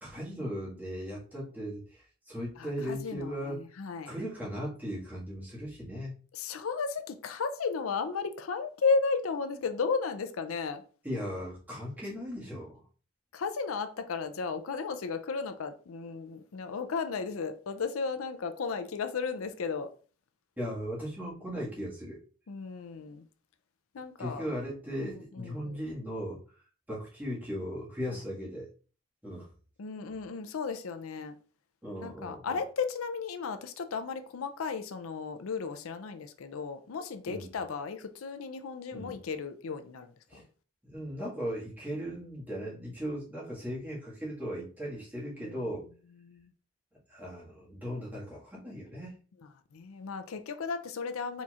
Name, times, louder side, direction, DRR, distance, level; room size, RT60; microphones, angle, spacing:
voice 1, 0.0-3.6 4.0-6.1 11.0-12.8 20.6-22.2 24.2-26.4 26.9-28.7 29.2-29.5 31.8-32.6 37.3-37.5 38.9-39.1 40.3-40.4 40.8-45.9 47.1-49.1, equal, 10° right, 1.7 m, -37 dB
voice 2, 2.6-4.1 6.3-10.8 13.3-19.9 22.5-23.2 23.9-24.5 25.0-25.8 29.8-31.4 32.0-40.4 45.4-45.6 46.2-46.5 49.7-51.4, left 5 dB, 90° left, 0.5 m, -34 dB
4.4 x 4.2 x 2.4 m
head